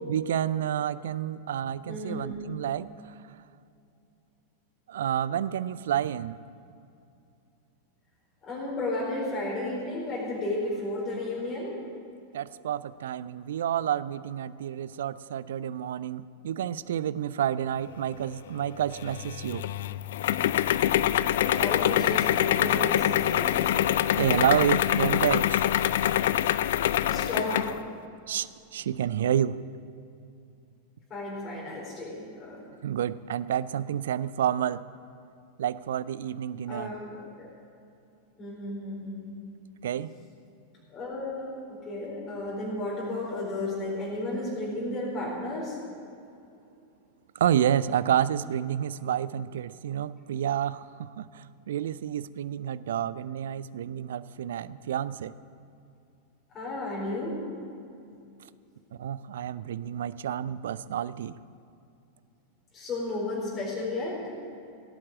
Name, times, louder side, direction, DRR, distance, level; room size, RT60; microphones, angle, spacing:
voice 1, 0.1-2.9 4.9-6.4 12.3-19.7 24.2-25.6 28.3-29.6 32.8-34.8 35.6-36.9 39.8-40.1 47.3-55.3 59.0-61.4, right 10 dB, 60° right, 17 dB, 0.4 m, -29 dB
voice 2, 1.9-2.4 8.4-11.7 21.4-23.9 27.0-27.8 31.1-32.6 36.7-37.5 38.4-39.2 40.9-45.8 56.5-57.4 62.7-64.3, left 2 dB, 25° left, -5 dB, 4.3 m, -33 dB
sound 1, 19.0-27.8, left 12 dB, 55° left, 0.3 m, -25 dB
16.5 x 8.7 x 7.3 m, 2.6 s
figure-of-eight pair, 90°, 0 cm